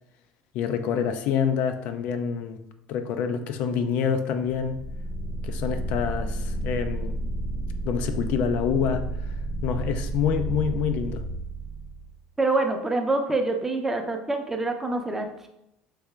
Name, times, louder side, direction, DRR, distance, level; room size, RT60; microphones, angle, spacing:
voice 1, 0.5-2.6 2.9-4.8 5.4-7.2 7.8-9.4 9.6-11.2, left 7 dB, 65° left, 8 dB, 0.3 m, -27 dB
sound 1, 4.6-12.2, right 2 dB, 25° left, 0.7 m, -31 dB
voice 2, 12.4-15.5, right 2 dB, 15° right, 4 dB, 0.5 m, -26 dB
3.3 x 2.8 x 3.3 m, 0.81 s
supercardioid pair, 90°, 3 cm